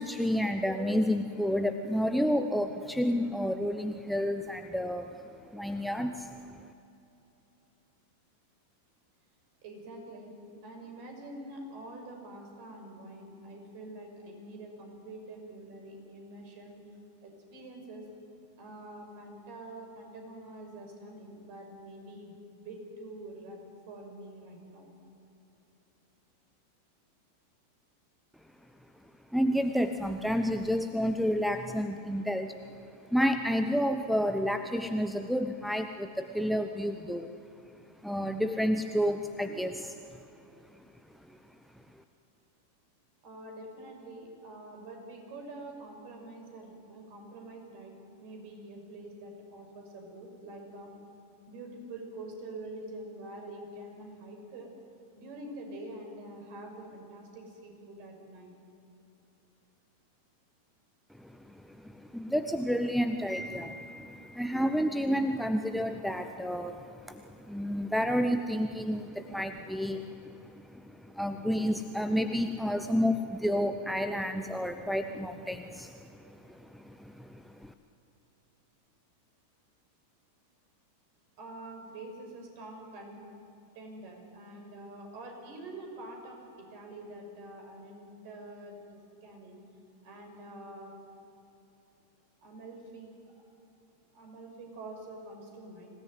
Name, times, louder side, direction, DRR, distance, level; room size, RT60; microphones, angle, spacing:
voice 1, 0.0-6.4 29.3-32.5 33.1-37.3 38.0-40.0 61.2-77.7, equal, ahead, 7 dB, 0.9 m, -30 dB
voice 2, 9.6-10.3 10.6-16.8 17.2-18.1 18.6-24.9 43.2-47.9 48.2-50.9 51.5-54.7 55.1-58.5 81.4-83.2 83.7-89.6 90.0-90.9 92.4-93.4 94.1-95.9, right 2 dB, 45° right, 2 dB, 6.1 m, -46 dB
25.5 x 17.5 x 9.5 m, 2.8 s
figure-of-eight pair, 90°, 0 cm